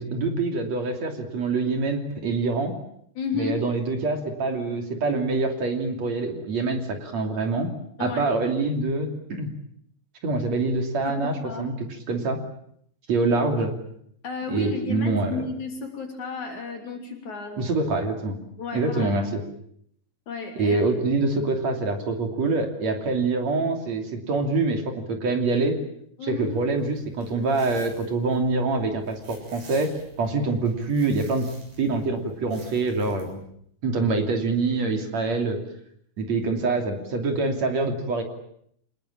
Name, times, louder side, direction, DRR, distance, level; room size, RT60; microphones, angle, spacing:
voice 1, 0.0-2.7 3.3-7.7 8.0-9.5 10.2-12.4 13.1-13.7 14.5-15.4 17.6-18.4 18.7-19.4 20.6-25.8 26.2-29.9 30.2-31.4 31.8-33.4 33.8-35.6 36.2-38.2, right 3 dB, 50° right, 4 dB, 4.0 m, -25 dB
voice 2, 3.2-3.6 8.0-8.3 11.0-11.7 14.2-17.6 18.6-19.2 20.3-20.9 26.2-26.6, left 4 dB, 55° left, 4 dB, 4.4 m, -32 dB
sound 1, 26.5-33.3, right 2 dB, 75° right, 9.2 m, -48 dB
27.0 x 20.0 x 8.8 m, 0.69 s
omnidirectional pair, 4.1 m